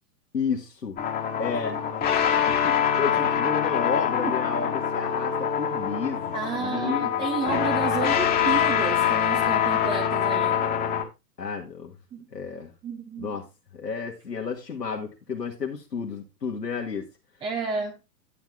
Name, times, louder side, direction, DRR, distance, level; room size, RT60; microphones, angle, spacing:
voice 1, 0.3-1.0 1.4-1.8 2.5-7.1 11.4-11.9 12.3-12.7 13.2-13.5 13.7-17.0, left 5 dB, 90° left, 2.0 m, -31 dB
sound 1, 1.0-11.0, left 8 dB, 20° left, 1.6 m, -24 dB
voice 2, 6.3-10.7 12.1-12.3 12.8-13.3 17.4-18.0, right 5 dB, 10° right, 0.6 m, -31 dB
10.5 x 7.6 x 3.5 m
hypercardioid pair, 120°, 48 cm